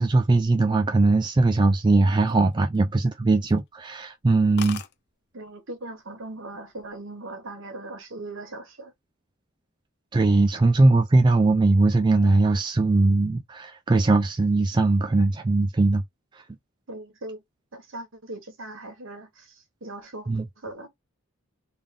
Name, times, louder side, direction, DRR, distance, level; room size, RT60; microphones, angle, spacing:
voice 1, 0.0-4.8 10.1-16.0 16.3-16.4 20.3-20.4, right 2 dB, 20° right, 0.3 m, -20 dB
sound 1, 2.1-3.1 3.5-3.7 4.0-4.1 4.3-4.4 4.6-4.9 5.8-6.2 6.5-6.9, left 8 dB, 50° left, 0.5 m, -40 dB
voice 2, 5.3-8.9 16.9-17.4 17.7-20.3 20.6-20.9, right 2 dB, 65° right, 1.3 m, -39 dB
3.6 x 2.4 x 3.6 m
head